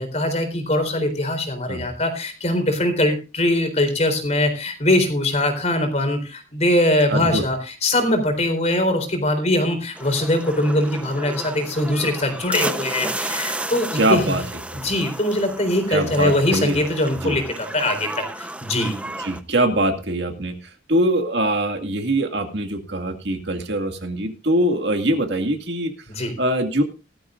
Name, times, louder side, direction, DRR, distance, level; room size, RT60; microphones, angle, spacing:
voice 1, 0.0-14.4 14.7-19.0 26.1-26.4, left 1 dB, 40° left, 7 dB, 3.9 m, -22 dB
voice 2, 7.1-7.4 14.0-14.4 15.9-16.8 17.2-17.4 19.2-20.5 20.9-25.9 26.4-26.8, right 1 dB, 70° right, 4 dB, 2.2 m, -22 dB
sound 1, 10.0-19.4, right 1 dB, 5° right, 0.8 m, -32 dB
18.0 x 13.0 x 2.5 m, 0.30 s
head